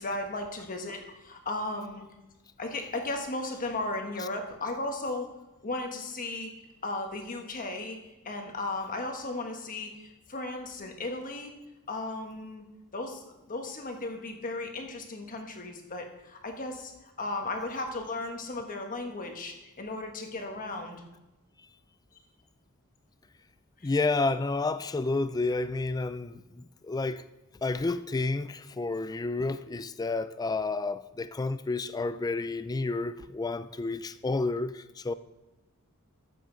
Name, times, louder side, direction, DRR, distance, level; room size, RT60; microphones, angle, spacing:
voice 1, 0.0-2.1 2.6-5.3 5.6-6.5 6.8-8.0 8.2-11.5 11.9-12.6 12.9-16.9 17.2-21.0, left 2 dB, 40° left, 1.3 m, -35 dB
voice 2, 23.8-27.3 27.6-35.1, left 3 dB, 15° left, 0.3 m, -30 dB
13.5 x 7.6 x 3.9 m
head